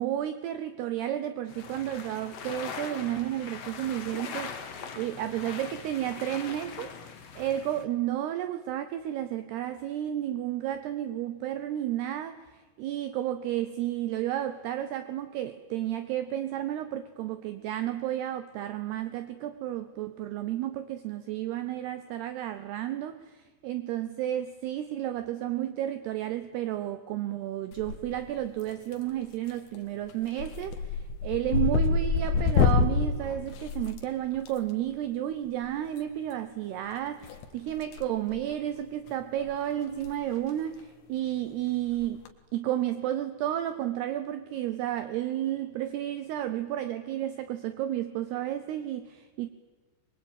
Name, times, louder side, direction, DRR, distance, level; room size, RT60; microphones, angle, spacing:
voice 1, 0.0-6.9 7.4-37.2 37.6-42.3 42.5-49.5, right 12 dB, 75° right, 12 dB, 2.6 m, -32 dB
sound 1, 1.5-7.8, left 6 dB, 50° left, 2.0 m, -41 dB
sound 2, 27.7-28.3 28.6-29.1 29.5-29.8 30.1-34.5 35.9-36.0 37.2-38.0 38.3-38.5 39.1-39.2 39.4-39.5 39.9-40.1 40.4-40.5 42.0-42.3, left 5 dB, 85° left, 4.2 m, -27 dB
23.5 x 23.0 x 9.1 m, 1.4 s
omnidirectional pair, 5.4 m